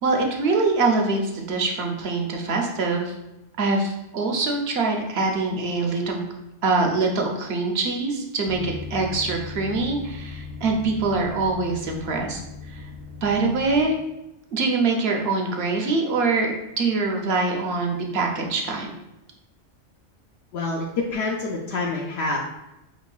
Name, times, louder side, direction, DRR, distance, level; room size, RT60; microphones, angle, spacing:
voice 1, 0.0-3.1 3.6-6.2 6.6-12.4 12.7-12.9 13.2-14.0 14.5-18.9, right 3 dB, 60° right, 2 dB, 0.9 m, -24 dB
sound 1, 8.5-13.9, left 4 dB, 90° right, 1.1 m, -38 dB
voice 2, 20.5-22.4, left 3 dB, 65° left, -1 dB, 0.8 m, -27 dB
5.2 x 2.9 x 2.3 m, 0.91 s
omnidirectional pair, 1.2 m